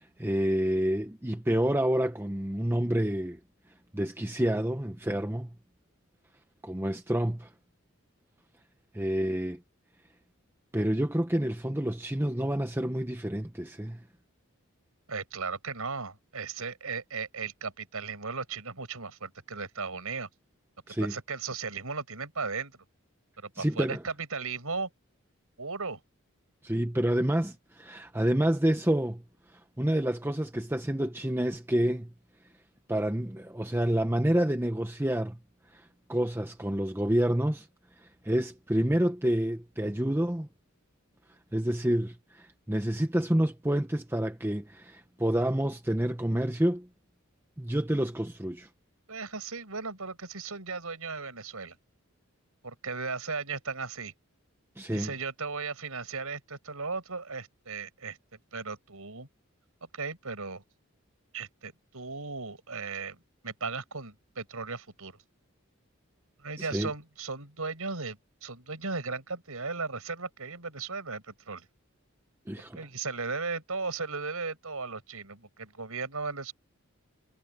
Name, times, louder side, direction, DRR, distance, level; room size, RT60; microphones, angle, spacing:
voice 1, 0.0-3.4 3.9-5.5 6.6-7.5 8.9-9.6 10.7-14.0 20.9-21.1 23.6-24.0 26.6-29.2 29.5-32.1 32.9-35.4 35.7-37.7 38.0-40.5 41.5-46.9 47.6-48.7 54.8-55.1 66.6-66.9 72.5-72.8, right 1 dB, 10° right, 0.8 m, -28 dB
voice 2, 15.1-20.3 20.9-22.8 23.4-24.9 25.6-26.0 49.1-51.8 52.6-54.1 54.9-59.3 59.9-60.6 61.3-63.2 63.4-65.2 66.4-71.7 72.8-76.5, right 4 dB, 85° right, 5.4 m, -36 dB
head